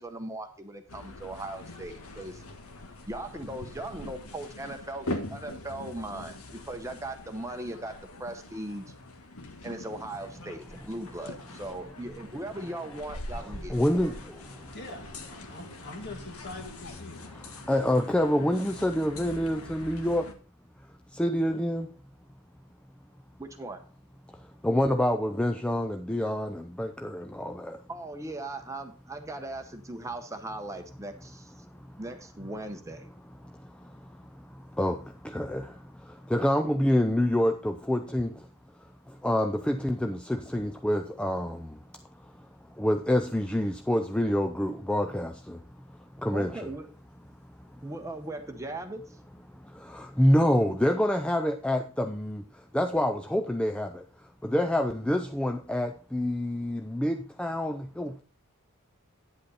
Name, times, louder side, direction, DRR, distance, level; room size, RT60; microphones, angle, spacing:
voice 1, 0.0-2.4 3.1-8.9 9.6-13.8 23.4-23.8 27.9-31.5 32.0-33.1 46.3-46.9 47.8-49.2, right 2 dB, 15° right, 0.8 m, -38 dB
sound 1, 0.9-20.3, left 2 dB, 70° left, 1.4 m, -43 dB
voice 2, 13.7-14.5 17.3-20.4 21.1-21.9 24.3-27.8 31.7-31.9 33.4-38.5 39.1-41.8 42.2-46.7 47.6-47.8 49.5-58.2, left 1 dB, 5° left, 0.4 m, -28 dB
voice 3, 14.7-15.1 15.5-17.2, left 2 dB, 50° left, 2.1 m, -42 dB
10.0 x 8.0 x 4.1 m
head